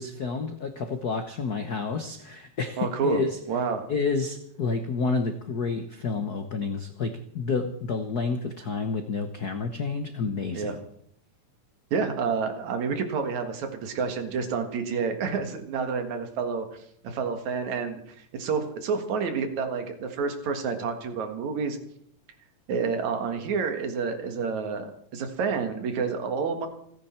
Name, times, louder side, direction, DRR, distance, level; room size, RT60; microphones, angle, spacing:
voice 1, 0.0-3.4 3.9-10.8, left 4 dB, 85° left, 7 dB, 0.8 m, -29 dB
voice 2, 2.8-3.2 3.5-3.8 10.5-10.8 11.9-21.8 22.7-26.7, right 5 dB, 70° right, 6 dB, 3.0 m, -29 dB
29.5 x 10.0 x 4.4 m, 0.70 s
omnidirectional pair, 3.5 m